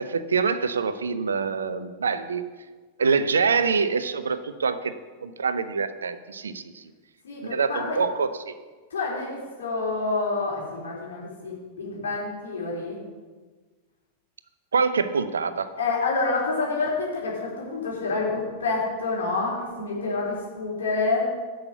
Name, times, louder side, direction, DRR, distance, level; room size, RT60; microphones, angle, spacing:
voice 1, 0.0-2.4 3.0-4.9 5.2-6.8 7.4-8.5 14.7-15.7, right 5 dB, 70° right, 12 dB, 0.6 m, -25 dB
voice 2, 7.2-8.0 8.9-13.0 15.8-21.2, left 3 dB, 65° left, -5 dB, 4.1 m, -28 dB
10.5 x 6.5 x 6.9 m, 1.4 s
figure-of-eight pair, 90°, 0 cm